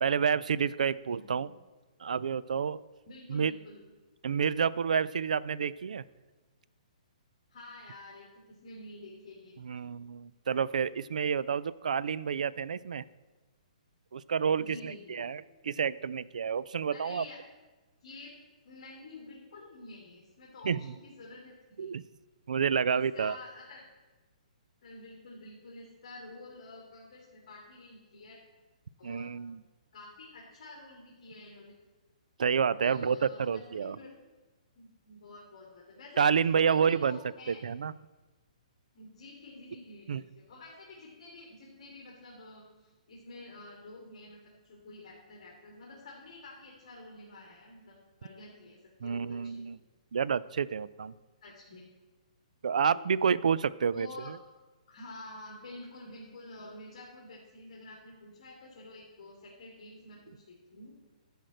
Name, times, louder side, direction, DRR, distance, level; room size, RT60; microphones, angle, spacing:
voice 1, 0.0-1.5 2.0-2.8 3.3-3.5 4.2-6.0 9.6-13.0 14.1-17.2 20.7-20.8 21.8-22.0 22.5-23.4 29.0-29.6 32.4-34.0 36.2-37.2 37.5-37.9 40.1-40.2 49.0-49.8 50.1-51.1 52.6-54.1, right 6 dB, 75° right, 19 dB, 0.4 m, -29 dB
voice 2, 1.1-1.5 3.1-3.8 7.5-10.0 14.6-15.2 16.9-17.4 18.0-18.3 18.6-21.9 22.8-23.8 24.8-28.4 29.0-29.3 29.9-31.7 32.8-34.1 34.8-37.6 38.9-49.7 51.4-51.8 52.9-53.0 53.9-54.3 54.9-60.9, left 2 dB, 45° left, -3 dB, 2.4 m, -49 dB
12.0 x 5.1 x 7.7 m, 1.2 s
hypercardioid pair, 175°, 4 cm